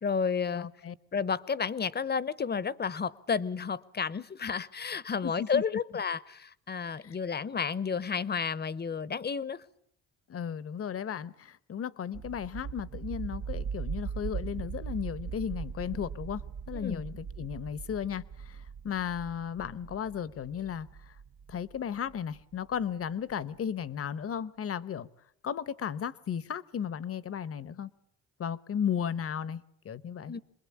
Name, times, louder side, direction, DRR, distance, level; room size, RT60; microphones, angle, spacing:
voice 1, 0.0-0.7 1.1-9.6 16.7-17.0 30.3-30.4, left 6 dB, 35° left, 1.0 m, -31 dB
voice 2, 0.6-0.9 5.2-5.6 7.0-7.2 10.3-21.1 21.5-25.1 25.4-27.9 28.4-30.3, left 8 dB, 50° left, 1.1 m, -35 dB
sound 1, 12.1-22.8, right 6 dB, 65° right, 1.1 m, -40 dB
27.0 x 21.0 x 8.6 m
cardioid pair, 90°, 30 cm